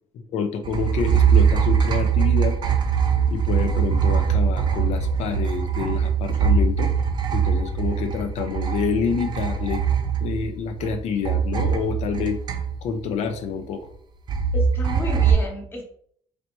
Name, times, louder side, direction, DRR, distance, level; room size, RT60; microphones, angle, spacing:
voice 1, 0.3-2.6 3.3-6.9 7.3-9.8 10.2-12.4 12.8-13.8, left 6 dB, 80° left, 7 dB, 0.5 m, -27 dB
sound 1, 0.6-10.9 11.2-13.1 14.3-15.3, right 7 dB, 40° right, 0.5 m, -22 dB
voice 2, 14.5-15.8, left 1 dB, 20° left, 0 dB, 0.9 m, -32 dB
4.0 x 3.2 x 3.0 m, 0.63 s
cardioid pair, 170°, 11 cm